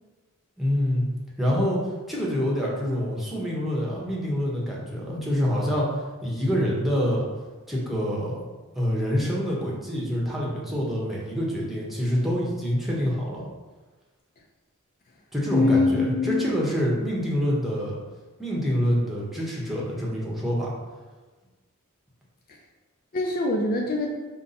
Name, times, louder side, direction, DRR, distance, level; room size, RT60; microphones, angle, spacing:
voice 1, 0.6-1.1 1.4-1.8 2.1-7.3 7.7-8.4 8.7-13.4 15.3-18.0 18.4-20.7, equal, ahead, -5 dB, 0.9 m, -26 dB
voice 2, 15.5-16.5 23.1-24.1, left 3 dB, 40° left, 1 dB, 0.4 m, -23 dB
5.3 x 2.1 x 4.0 m, 1.3 s
head